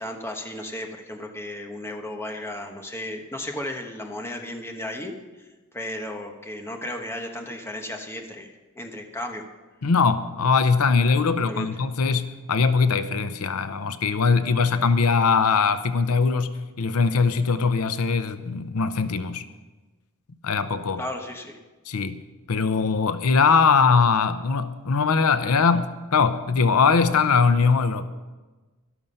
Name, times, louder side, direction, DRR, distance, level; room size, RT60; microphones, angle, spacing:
voice 1, 0.0-5.5 5.7-9.4 11.5-11.7 21.0-21.6, left 1 dB, 10° left, 3 dB, 1.2 m, -34 dB
voice 2, 9.8-19.4 20.4-21.0 21.9-22.2 22.5-28.1, left 5 dB, 85° left, 12 dB, 0.7 m, -21 dB
13.0 x 12.0 x 5.5 m, 1.2 s
head